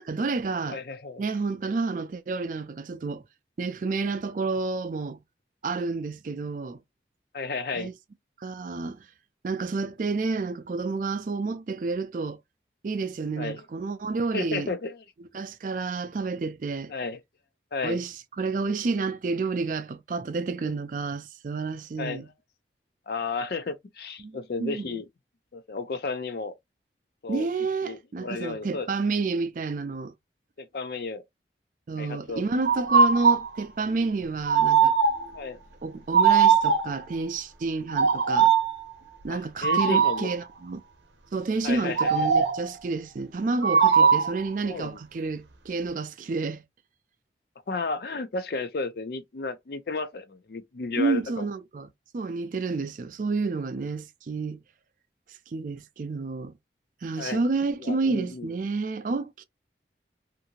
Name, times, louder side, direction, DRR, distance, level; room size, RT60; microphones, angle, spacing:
voice 1, 0.1-0.8 1.2-3.2 3.6-5.2 5.6-6.8 7.7-7.9 8.4-9.1 9.4-12.4 12.8-14.7 15.3-16.9 17.8-22.3 24.2-25.0 27.3-30.1 31.9-34.9 35.8-38.5 39.2-40.8 41.3-46.6 51.0-51.9 52.1-54.6 55.5-56.5 57.0-59.4, right 3 dB, 50° right, 0.4 m, -30 dB
voice 2, 0.7-1.2 7.3-7.9 13.4-13.7 14.3-15.0 16.9-17.2 17.7-18.0 22.0-22.2 23.1-25.1 25.5-26.5 27.2-27.5 27.8-28.9 30.6-31.2 32.0-32.4 35.3-35.6 39.3-40.3 41.6-42.5 44.0-44.2 44.6-45.0 47.7-51.5 57.2-57.4 57.8-58.5, left 3 dB, 60° left, 0.4 m, -33 dB
sound 1, 32.7-33.5 34.5-35.4 36.1-37.0 37.9-38.8 39.6-40.3 42.0-42.7 43.6-44.4, right 6 dB, 85° right, 0.6 m, -20 dB
2.7 x 2.5 x 2.7 m
head